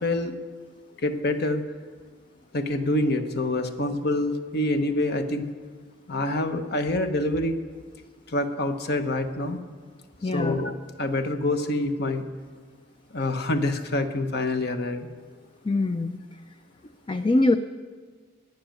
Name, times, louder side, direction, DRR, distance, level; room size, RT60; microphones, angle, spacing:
voice 1, 0.0-0.3 1.0-1.6 2.5-5.5 6.1-7.6 8.3-9.6 10.3-12.3 13.1-15.1, left 1 dB, 55° left, 8 dB, 1.0 m, -26 dB
voice 2, 10.2-10.5 15.6-16.2 17.1-17.6, left 2 dB, 25° left, 9 dB, 0.4 m, -22 dB
12.5 x 9.2 x 9.0 m, 1.5 s
head